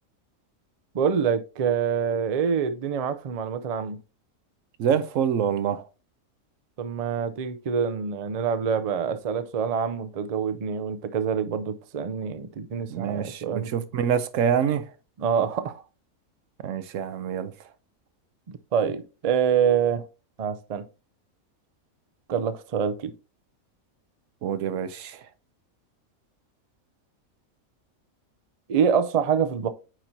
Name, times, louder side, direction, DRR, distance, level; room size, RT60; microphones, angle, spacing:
voice 1, 0.9-4.0 6.8-13.7 15.2-15.8 18.5-20.0 20.4-20.8 22.3-23.1 28.7-29.7, right 7 dB, 85° right, 0.3 m, -26 dB
voice 2, 4.8-5.8 12.9-14.9 16.6-17.5 24.4-25.2, right 8 dB, 70° right, 1.0 m, -26 dB
9.0 x 4.4 x 2.7 m
omnidirectional pair, 1.5 m